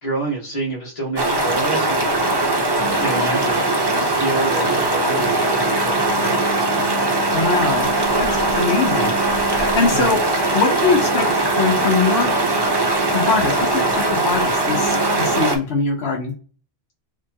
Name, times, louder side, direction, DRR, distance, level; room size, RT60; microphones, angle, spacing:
voice 1, 0.0-2.7 3.0-7.1 9.9-10.1, right 2 dB, 35° left, -6 dB, 1.5 m, -29 dB
sound 1, 1.2-15.6, right 2 dB, 30° right, 0.5 m, -20 dB
sound 2, 2.8-15.4, right 5 dB, 85° right, 1.0 m, -33 dB
voice 2, 7.3-7.9 8.2-8.3 8.6-9.2 9.4-11.3 11.6-12.3 13.1-16.3, left 4 dB, 60° left, 0 dB, 0.9 m, -22 dB
4.8 x 2.3 x 2.7 m, 0.38 s
omnidirectional pair, 1.3 m